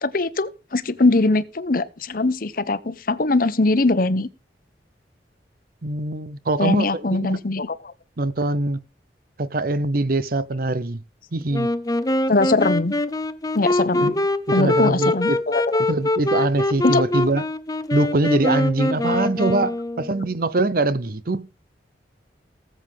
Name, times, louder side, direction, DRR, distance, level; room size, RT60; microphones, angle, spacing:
voice 1, 0.0-4.3 6.6-7.9 12.3-13.0 13.5-14.1 14.5-15.8 16.8-17.0, left 2 dB, 50° left, 0.9 m, -21 dB
voice 2, 5.8-7.4 8.2-8.8 9.4-11.0 11.3-11.7 14.0-14.2 14.5-15.4 15.9-17.4 17.9-21.5, right 2 dB, 55° right, 0.8 m, -23 dB
Wind instrument woodwind instrument, 11.5-20.3, left 2 dB, 20° left, 0.8 m, -24 dB
19.0 x 7.6 x 3.5 m
head